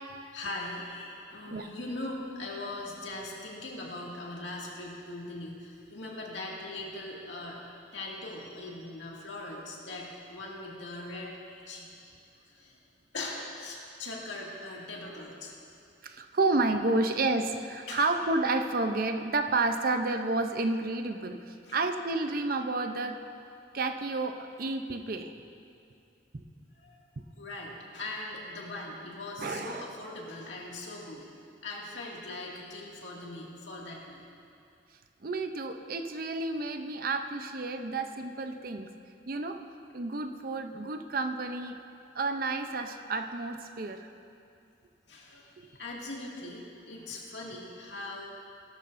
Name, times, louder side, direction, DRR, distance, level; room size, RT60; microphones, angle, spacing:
voice 1, 0.3-7.6 7.9-11.9 12.5-12.8 13.1-15.5 17.9-18.0 21.7-21.8 26.8-27.0 27.4-31.2 31.6-34.2 45.1-48.3, left 2 dB, 80° left, -3 dB, 2.1 m, -40 dB
voice 2, 16.0-23.2 23.7-25.3 26.3-26.4 29.4-29.9 35.2-38.9 39.3-39.6 39.9-41.8 42.1-44.1 45.6-45.7, right 3 dB, 50° right, 7 dB, 0.6 m, -30 dB
18.0 x 12.5 x 2.6 m, 2.5 s
head